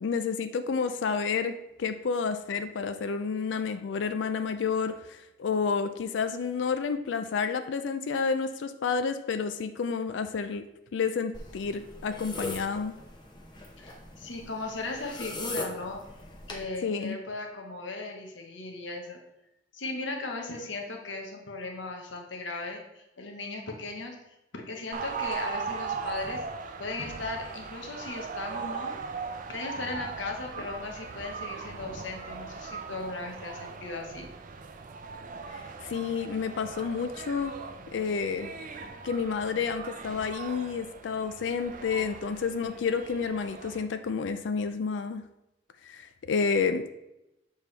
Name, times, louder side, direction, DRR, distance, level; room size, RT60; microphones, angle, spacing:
voice 1, 0.0-10.6 10.9-13.0 16.8-17.2 35.5-37.5 37.9-38.5 39.0-45.2 45.8-46.9, left 5 dB, 75° left, 9 dB, 0.4 m, -30 dB
sound 1, 11.3-16.6, left 2 dB, 25° left, 0.9 m, -40 dB
voice 2, 13.8-16.1 16.5-19.2 19.7-24.2 24.5-26.4 26.8-29.0 29.5-34.3, left 3 dB, 90° left, 2 dB, 1.1 m, -37 dB
sound 2, 24.9-43.8, right 5 dB, 45° right, 0.5 m, -39 dB
6.9 x 4.5 x 3.3 m, 0.90 s
head